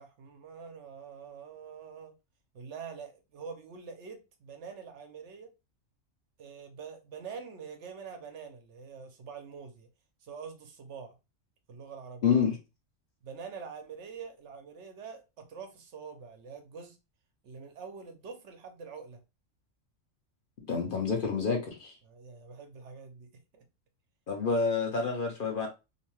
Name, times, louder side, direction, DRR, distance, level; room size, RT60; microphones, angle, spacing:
voice 1, 0.0-2.1 2.5-5.5 6.4-9.9 10.2-11.1 11.7-12.4 13.2-17.0 17.4-19.2 22.0-23.6, right 6 dB, 70° right, 0.9 m, -45 dB
voice 2, 12.2-12.6 20.7-21.9 24.3-25.7, left 5 dB, 50° left, 0.7 m, -28 dB
2.7 x 2.1 x 3.0 m
omnidirectional pair, 1.3 m